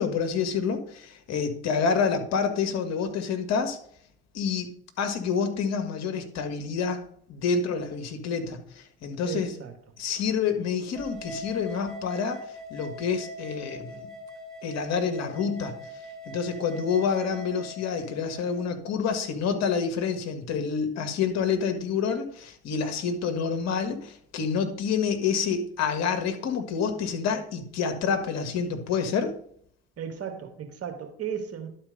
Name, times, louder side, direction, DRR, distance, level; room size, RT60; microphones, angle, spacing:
voice 1, 0.0-3.8 4.3-4.7 5.0-7.0 7.3-9.5 10.0-12.4 12.7-14.1 14.6-15.8 16.2-29.3, left 6 dB, 60° left, 1.6 m, -28 dB
voice 2, 9.2-9.7 30.0-31.7, right 7 dB, 50° right, 2.0 m, -35 dB
sound 1, 10.9-18.6, equal, ahead, 3.3 m, -41 dB
11.5 x 4.3 x 5.2 m
hypercardioid pair, 55°, 30 cm